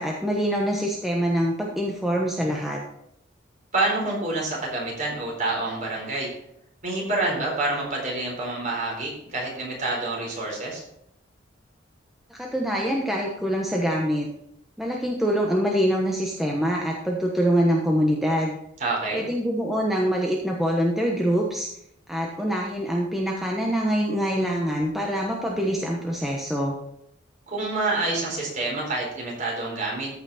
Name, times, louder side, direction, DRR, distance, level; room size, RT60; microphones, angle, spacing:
voice 1, 0.0-2.8 12.3-14.3 14.8-18.6 19.1-21.7 22.1-26.7, equal, ahead, -2 dB, 1.0 m, -24 dB
voice 2, 3.7-6.3 6.8-10.8 18.8-19.2 27.5-30.1, right 2 dB, 40° right, -2 dB, 4.2 m, -27 dB
14.0 x 5.9 x 4.2 m, 0.75 s
head